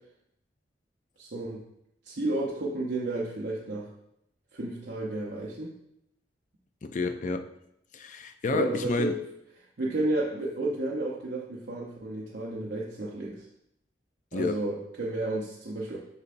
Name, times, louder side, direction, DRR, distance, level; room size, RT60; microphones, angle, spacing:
voice 1, 1.2-1.6 2.0-3.9 4.5-5.7 8.5-9.2 9.8-13.5 14.3-16.0, right 2 dB, 70° right, -5 dB, 0.8 m, -32 dB
voice 2, 6.8-7.5 7.9-9.2 14.3-14.6, left 3 dB, 45° left, 8 dB, 0.4 m, -30 dB
6.8 x 5.6 x 2.6 m, 0.78 s
head